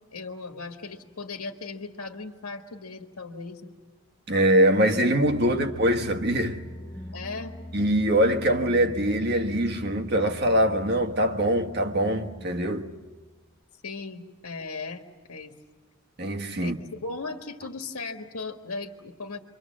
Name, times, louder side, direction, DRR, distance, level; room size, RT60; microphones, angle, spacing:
voice 1, 0.1-3.7 5.5-5.7 7.1-7.5 13.8-15.6 16.6-19.4, left 3 dB, 90° left, 1.7 m, -37 dB
voice 2, 4.3-6.6 7.7-12.9 16.2-16.8, right 1 dB, 45° right, 1.4 m, -23 dB
sound 1, 4.7-13.5, left 1 dB, 15° left, 0.8 m, -42 dB
28.0 x 24.5 x 7.4 m
head